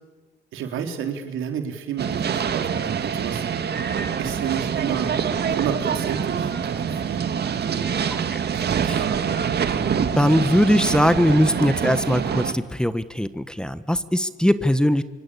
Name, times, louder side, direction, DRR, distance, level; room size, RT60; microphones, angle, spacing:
voice 1, 0.5-3.4 4.2-5.2 5.6-7.9 8.5-9.4, right 8 dB, 85° right, 5 dB, 3.7 m, -31 dB
sound 1, 2.0-12.5, right 7 dB, 55° right, 2.1 m, -25 dB
voice 2, 10.2-15.0, equal, 5° left, 12 dB, 1.5 m, -20 dB
26.5 x 25.0 x 8.6 m, 1.3 s
cardioid pair, 90°, 20 cm